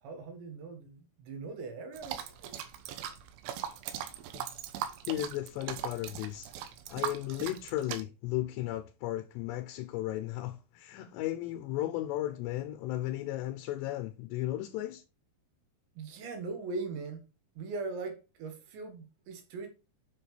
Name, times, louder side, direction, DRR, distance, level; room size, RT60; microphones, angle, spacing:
voice 1, 0.0-2.6 16.0-17.3 17.6-19.7, right 3 dB, 75° right, 3.8 m, -40 dB
sound 1, 1.9-8.0, right 10 dB, 90° right, 3.6 m, -40 dB
voice 2, 5.1-6.5 6.9-15.0, left 15 dB, 80° left, 2.7 m, -35 dB
9.7 x 6.2 x 3.4 m
omnidirectional pair, 5.4 m